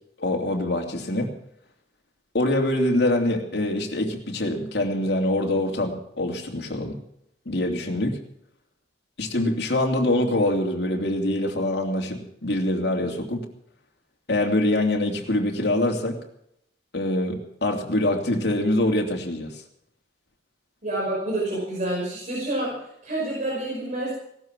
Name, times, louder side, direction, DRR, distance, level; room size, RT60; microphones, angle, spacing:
voice 1, 0.2-1.3 2.3-7.0 7.4-8.2 9.2-13.4 14.3-16.2 16.9-19.6, left 1 dB, 70° left, 1 dB, 2.9 m, -24 dB
voice 2, 20.8-22.7 23.0-24.1, right 1 dB, 45° right, -5 dB, 5.7 m, -28 dB
18.0 x 12.5 x 6.2 m, 0.76 s
head